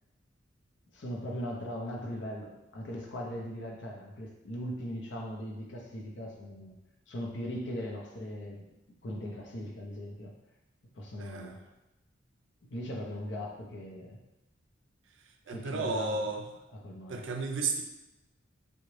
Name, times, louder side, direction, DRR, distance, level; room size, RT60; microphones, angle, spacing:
voice 1, 0.9-6.8 7.1-8.6 9.0-10.3 10.9-11.6 12.7-14.2 15.5-16.2 16.8-17.2, equal, 60° left, 0 dB, 0.6 m, -39 dB
voice 2, 11.2-11.6 15.5-16.5 17.1-17.8, right 3 dB, 65° right, 3 dB, 0.4 m, -33 dB
3.8 x 2.1 x 3.1 m, 0.96 s
head